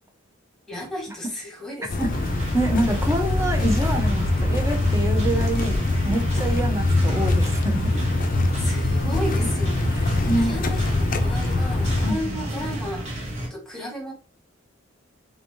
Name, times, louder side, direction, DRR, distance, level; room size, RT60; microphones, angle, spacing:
voice 1, 0.7-2.3 8.6-10.1 10.4-14.1, left 1 dB, 5° left, -2 dB, 1.5 m, -34 dB
Footsteps Pavement Walking, 1.9-12.1, left 2 dB, 45° left, 0.5 m, -23 dB
sound 1, 2.1-13.5, right 1 dB, 35° right, 1.4 m, -31 dB
voice 2, 2.5-5.8 6.0-7.9 9.9-10.6 12.0-12.4, right 1 dB, 15° right, 3 dB, 0.8 m, -26 dB
3.5 x 3.3 x 2.7 m, 0.34 s
head